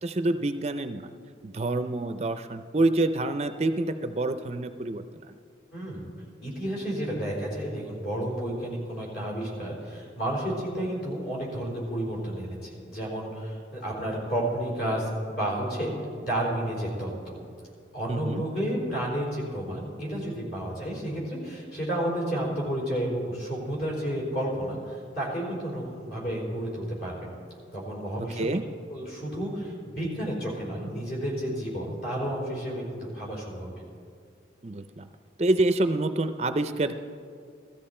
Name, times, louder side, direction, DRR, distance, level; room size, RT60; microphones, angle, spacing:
voice 1, 0.0-1.0 1.4-5.3 18.1-18.4 28.4-28.6 34.6-35.1 35.4-37.0, right 2 dB, 35° right, 9 dB, 0.4 m, -27 dB
voice 2, 5.7-6.1 6.4-15.9 16.2-17.4 17.9-27.3 27.7-28.5 28.9-33.7, right 1 dB, 55° left, -3 dB, 4.4 m, -31 dB
16.5 x 13.5 x 4.3 m, 2.3 s
head